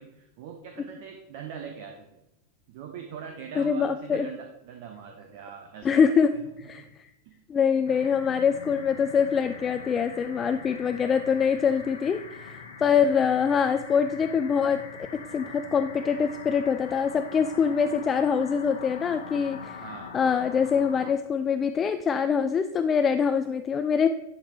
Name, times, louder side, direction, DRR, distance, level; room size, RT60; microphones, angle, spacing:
voice 1, 0.0-2.2 2.7-6.0 6.8-6.9 7.3-7.4 12.8-12.9 19.8-20.1, right 7 dB, 50° right, 4 dB, 0.8 m, -41 dB
voice 2, 3.6-4.3 5.8-6.3 6.6-7.1 7.5-14.9 15.3-19.8 20.1-24.1, left 6 dB, 20° left, 9 dB, 0.3 m, -24 dB
sound 1, 7.9-21.1, left 5 dB, 65° left, 1.1 m, -43 dB
10.5 x 3.6 x 4.5 m, 0.88 s
figure-of-eight pair, 90°, 0 cm